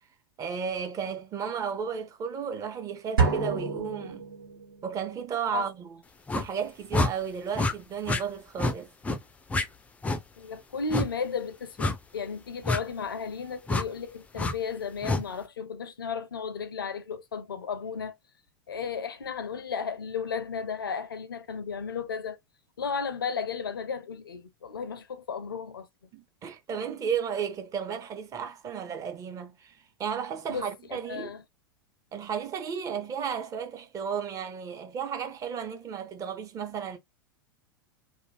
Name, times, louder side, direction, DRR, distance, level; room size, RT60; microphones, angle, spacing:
voice 1, 0.4-4.3 4.8-6.0 6.3-8.9 26.1-31.3 32.1-37.0, right 7 dB, 30° right, 0.8 m, -33 dB
sound 1, 3.2-4.9, right 4 dB, 75° right, 1.3 m, -28 dB
sound 2, 6.3-6.5 6.9-7.1 7.5-7.7 8.1-8.2 8.6-8.8 9.0-9.2 9.5-9.7 10.0-10.2 10.9-11.1 11.8-12.0 12.6-12.8 13.7-13.9 14.4-14.5 15.0-15.2, left 2 dB, 10° left, 0.4 m, -27 dB
voice 2, 10.4-18.1 18.7-22.4 22.8-25.9 30.5-31.4, left 5 dB, 75° left, 0.5 m, -34 dB
2.5 x 2.3 x 3.2 m
figure-of-eight pair, 85°, 12 cm